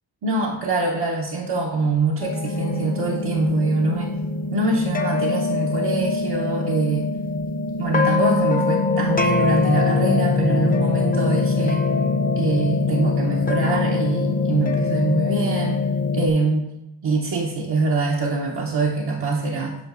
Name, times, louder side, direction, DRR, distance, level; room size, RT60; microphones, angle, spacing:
voice 1, 0.2-4.1 4.5-7.1 7.8-11.8 12.4-15.8 16.1-16.7 17.0-19.8, right 3 dB, 85° right, -3 dB, 0.8 m, -24 dB
sound 1, 2.2-16.3, left 4 dB, 25° left, 0.5 m, -23 dB
8.5 x 5.4 x 2.5 m, 0.91 s
cardioid pair, 75°, 39 cm